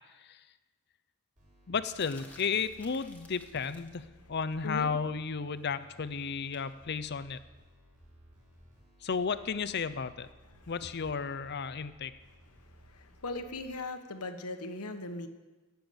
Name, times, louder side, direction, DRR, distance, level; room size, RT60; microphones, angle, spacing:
sound 1, 1.4-13.8, equal, 35° right, 5.7 m, -59 dB
voice 1, 1.7-7.4 9.0-10.3 10.7-12.1, left 5 dB, 50° left, 13 dB, 0.5 m, -33 dB
sound 2, 1.9-4.0 6.5-6.7, left 2 dB, 5° left, 1.6 m, -55 dB
voice 2, 12.9-15.3, left 2 dB, 90° left, 7 dB, 1.3 m, -39 dB
17.0 x 7.0 x 7.9 m, 1.2 s
head